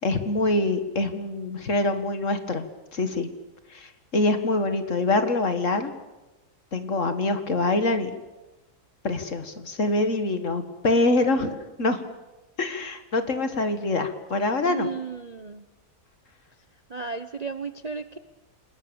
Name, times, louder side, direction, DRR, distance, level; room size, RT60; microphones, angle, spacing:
voice 1, 0.0-2.6 2.9-3.3 3.7-5.9 6.7-8.1 9.0-12.0 12.6-14.9, left 2 dB, 50° left, 9 dB, 2.1 m, -25 dB
voice 2, 14.6-15.7 16.9-18.2, right 5 dB, 35° right, 10 dB, 0.7 m, -34 dB
28.0 x 20.0 x 7.1 m, 1.1 s
omnidirectional pair, 1.7 m